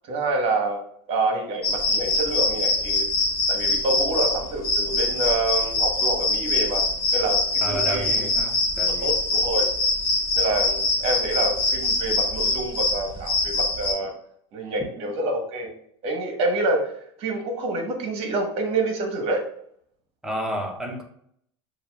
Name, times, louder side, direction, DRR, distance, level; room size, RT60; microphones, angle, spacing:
voice 1, 0.1-0.8 1.1-3.1 3.5-6.8 7.1-8.3 9.0-9.7 10.3-14.1 14.5-15.7 16.0-16.9 17.2-19.5, right 2 dB, 45° right, 1.0 m, -27 dB
sound 1, 1.6-13.9, left 2 dB, 45° left, 1.1 m, -24 dB
voice 2, 7.6-9.1 20.2-21.0, right 1 dB, 5° right, 0.6 m, -31 dB
6.4 x 2.4 x 2.3 m
supercardioid pair, 130°, 14 cm